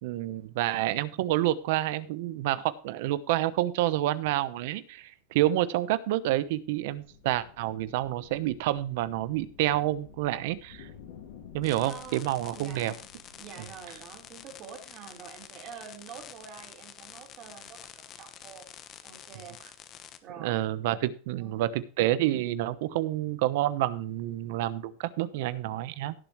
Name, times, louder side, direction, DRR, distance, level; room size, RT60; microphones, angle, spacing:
voice 1, 0.0-10.9 11.5-12.9 20.4-26.1, right 14 dB, 65° right, 16 dB, 1.0 m, -28 dB
sound 1, 6.6-15.0, left 7 dB, 80° left, 2.9 m, -52 dB
sound 2, 11.6-20.2, left 10 dB, 35° left, 1.1 m, -48 dB
voice 2, 11.9-12.3 12.5-13.1 13.4-18.7 19.0-19.6 20.2-20.6 21.4-21.8, right 7 dB, 35° right, 1 dB, 4.6 m, -46 dB
17.0 x 7.3 x 3.2 m, 0.39 s
supercardioid pair, 140°, 0 cm